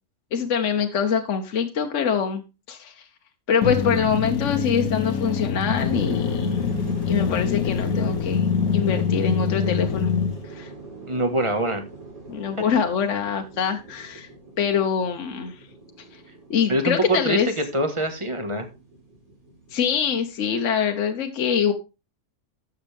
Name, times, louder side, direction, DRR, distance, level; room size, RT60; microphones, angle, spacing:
voice 1, 0.3-3.1 3.5-6.6 7.1-10.1 10.5-10.7 12.3-14.3 14.6-15.6 16.1-16.2 16.5-17.5 19.7-21.7, left 7 dB, 60° left, 5 dB, 1.2 m, -24 dB
sound 1, 3.6-10.4, left 6 dB, 75° left, 1.4 m, -24 dB
sound 2, 5.8-20.3, right 2 dB, 70° right, 3.8 m, -40 dB
voice 2, 11.1-11.8 16.7-18.7, right 1 dB, 20° right, 6 dB, 1.5 m, -24 dB
12.5 x 7.2 x 3.5 m, 0.28 s
omnidirectional pair, 1.5 m